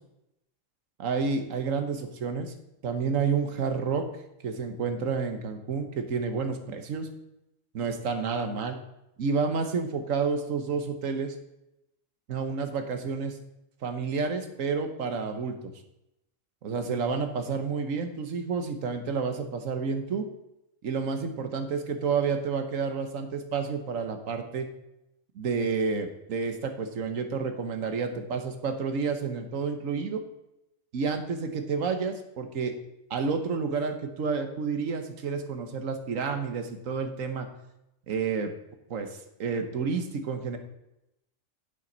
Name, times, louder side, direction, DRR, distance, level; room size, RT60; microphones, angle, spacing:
voice 1, 1.0-2.5 2.8-4.0 4.4-7.1 7.7-8.8 9.2-11.3 12.3-13.4 13.8-15.7 16.6-20.3 20.8-24.7 25.3-30.2 30.9-32.7 33.1-37.5 38.1-38.5 38.9-40.6, right 5 dB, 85° right, 6 dB, 1.5 m, -30 dB
9.5 x 8.8 x 4.0 m, 0.87 s
omnidirectional pair, 1.3 m